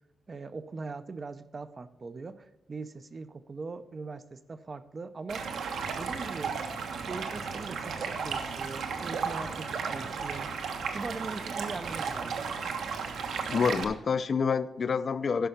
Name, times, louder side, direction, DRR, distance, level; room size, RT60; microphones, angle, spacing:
voice 1, 0.3-5.5 6.0-6.7 7.1-10.5 10.9-12.4, right 4 dB, 25° right, 12 dB, 0.5 m, -41 dB
Stream, 5.3-13.8, right 5 dB, 75° right, 1.3 m, -34 dB
voice 2, 13.5-15.5, left 5 dB, 40° left, 14 dB, 0.4 m, -27 dB
11.5 x 5.8 x 6.5 m, 0.98 s
wide cardioid pair, 180°, 0 cm